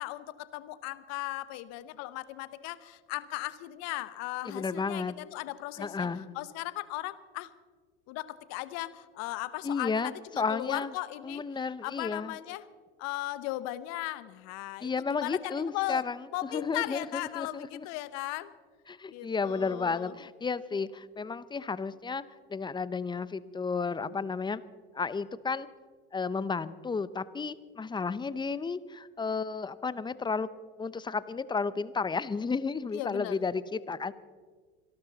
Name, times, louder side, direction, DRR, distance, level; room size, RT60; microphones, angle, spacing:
voice 1, 0.0-6.1 6.3-7.5 8.1-11.4 11.8-12.7 13.0-16.0 16.3-18.5 19.1-20.1 32.9-33.4, left 17 dB, 60° left, 15 dB, 1.0 m, -37 dB
voice 2, 4.4-5.1 5.8-6.3 9.6-10.9 11.2-12.3 14.8-16.2 16.5-17.8 18.9-22.2 22.5-24.6 24.9-25.7 26.1-30.5 30.8-34.1, left 4 dB, 15° left, 17 dB, 0.7 m, -32 dB
26.0 x 12.5 x 4.0 m, 1.5 s
hypercardioid pair, 85°, 30 cm